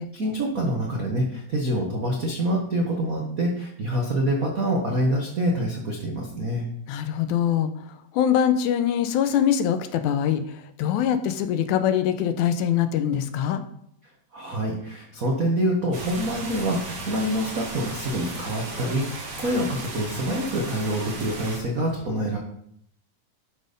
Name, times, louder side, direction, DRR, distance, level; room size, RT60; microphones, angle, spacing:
voice 1, 0.0-6.6 14.3-22.4, right 1 dB, 70° right, 0 dB, 0.8 m, -26 dB
voice 2, 6.9-7.7 8.1-13.6, left 9 dB, 85° left, 8 dB, 2.1 m, -23 dB
sound 1, 15.9-21.6, right 3 dB, 40° right, 1.8 m, -36 dB
12.0 x 4.2 x 5.2 m, 0.70 s
omnidirectional pair, 3.5 m